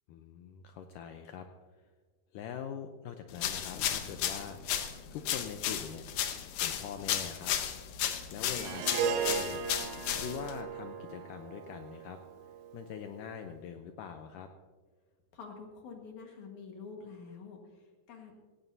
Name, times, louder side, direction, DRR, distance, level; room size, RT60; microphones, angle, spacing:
voice 1, 0.1-1.5 2.3-6.1 6.6-7.5 8.3-9.6 10.2-12.2 12.7-14.5, left 8 dB, 90° left, 6 dB, 1.9 m, -43 dB
sound 1, 3.4-10.6, left 10 dB, 75° left, 1.9 m, -34 dB
Harp, 8.5-13.0, right 6 dB, 70° right, 2.5 m, -36 dB
voice 2, 15.3-18.3, left 5 dB, 55° left, 2 dB, 2.6 m, -47 dB
17.0 x 16.5 x 2.7 m, 1.4 s
omnidirectional pair, 4.6 m